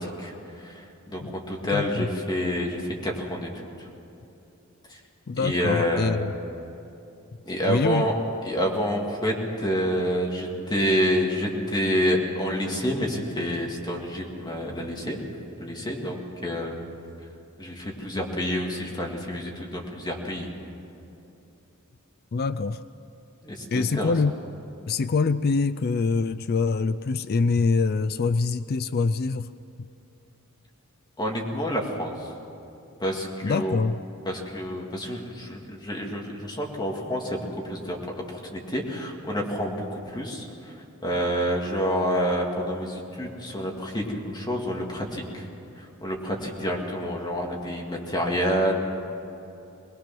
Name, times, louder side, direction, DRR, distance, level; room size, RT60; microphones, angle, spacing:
voice 1, 0.0-3.5 3.8-3.9 4.9-5.0 5.4-6.2 7.5-8.1 8.4-15.2 15.6-16.8 17.6-20.5 23.4-24.1 31.2-32.3 33.0-33.8 34.2-40.7 41.0-45.5 45.8-48.7, equal, 20° left, 0 dB, 2.2 m, -28 dB
voice 2, 1.7-2.1 5.3-6.4 7.7-8.1 22.3-22.8 23.7-24.3 24.9-29.5 33.4-34.0, left 4 dB, 50° left, 13 dB, 0.4 m, -24 dB
21.5 x 20.5 x 6.0 m, 2.8 s
head